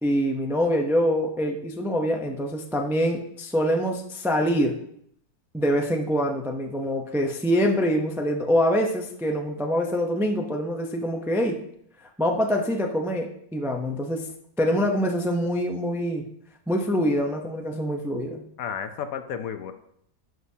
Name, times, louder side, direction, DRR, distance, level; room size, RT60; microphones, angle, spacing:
voice 1, 0.0-4.8 5.5-11.6 12.2-14.3 14.6-16.2 16.7-18.4, equal, 5° right, 2 dB, 0.3 m, -25 dB
voice 2, 18.6-19.7, left 7 dB, 70° left, 8 dB, 1.1 m, -32 dB
11.0 x 6.2 x 2.8 m, 0.71 s
omnidirectional pair, 1.6 m